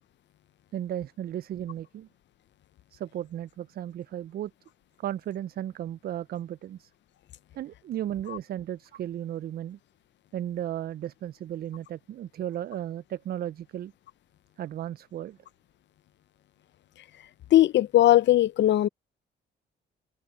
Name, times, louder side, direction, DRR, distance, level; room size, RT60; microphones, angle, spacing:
voice 1, 0.7-2.1 2.9-4.5 5.0-6.9 7.5-9.8 10.3-13.9 14.6-15.4, right 11 dB, 50° right, 0.4 m, -35 dB
voice 2, 17.5-18.9, left 14 dB, 65° left, 0.7 m, -19 dB
open air
cardioid pair, 90°, 20 cm